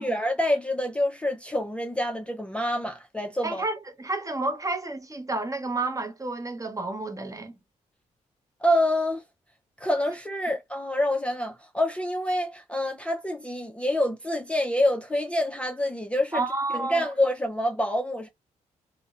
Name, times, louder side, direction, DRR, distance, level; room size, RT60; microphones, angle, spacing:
voice 1, 0.0-3.6 8.6-9.2 9.8-16.5 16.7-18.3, left 1 dB, 10° left, 0.4 m, -27 dB
voice 2, 3.4-7.5 16.3-17.1, right 3 dB, 20° right, 0.8 m, -30 dB
2.7 x 2.0 x 2.3 m
supercardioid pair, 50°, 15 cm